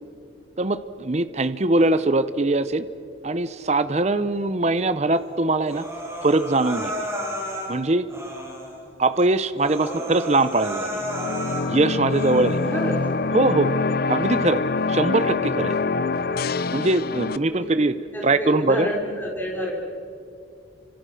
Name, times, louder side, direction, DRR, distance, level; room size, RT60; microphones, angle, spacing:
voice 1, 0.6-2.9 3.2-5.9 6.2-7.1 7.7-8.1 9.0-11.1 11.7-12.8 13.3-13.7 14.1-14.6 14.9-15.8 16.7-18.0 18.2-18.9, right 2 dB, 35° right, 13 dB, 0.7 m, -22 dB
Human voice, 5.6-7.7 8.1-8.7 9.2-9.3 9.6-11.7 12.1-12.7, equal, 15° right, 6.5 m, -32 dB
sound 1, 10.9-17.4, left 4 dB, 50° left, 0.6 m, -25 dB
voice 2, 12.7-13.0 17.5-17.7 18.1-19.7, equal, 10° left, -1 dB, 4.0 m, -29 dB
30.0 x 26.0 x 6.4 m, 2.6 s
head